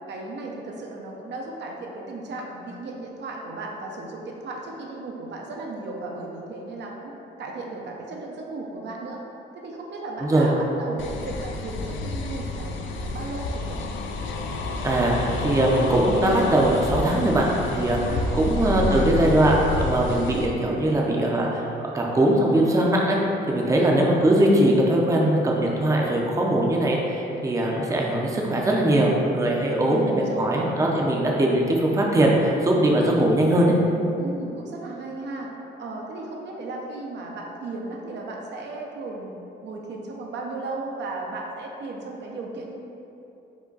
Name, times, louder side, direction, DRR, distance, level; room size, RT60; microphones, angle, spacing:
voice 1, 0.1-7.1 7.4-9.2 9.5-13.8 18.0-19.2 23.6-23.9 29.6-30.7 34.2-35.5 35.8-39.3 39.6-42.7, right 2 dB, 60° right, -1 dB, 0.6 m, -35 dB
voice 2, 10.2-10.5 14.8-23.2 23.5-33.7, right 1 dB, 15° right, -2 dB, 0.5 m, -21 dB
sound 1, 11.0-20.5, left 3 dB, 75° left, 0.4 m, -29 dB
4.9 x 2.2 x 3.9 m, 2.9 s
cardioid pair, 90°, 20 cm